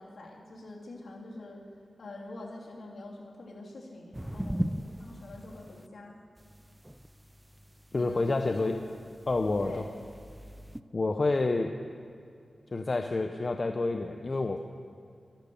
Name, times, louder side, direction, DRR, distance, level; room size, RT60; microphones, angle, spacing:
voice 1, 0.0-1.6 2.0-6.1 7.9-8.9 9.6-9.9, left 2 dB, 75° left, -2 dB, 3.0 m, -45 dB
sound 1, 4.1-5.9 6.4-10.8, right 1 dB, 10° right, 0.5 m, -39 dB
voice 2, 7.9-8.7 9.3-9.7 10.9-11.7 12.7-14.6, left 3 dB, 45° left, 5 dB, 0.7 m, -28 dB
13.0 x 11.5 x 7.0 m, 2.4 s
cardioid pair, 55°, 0 cm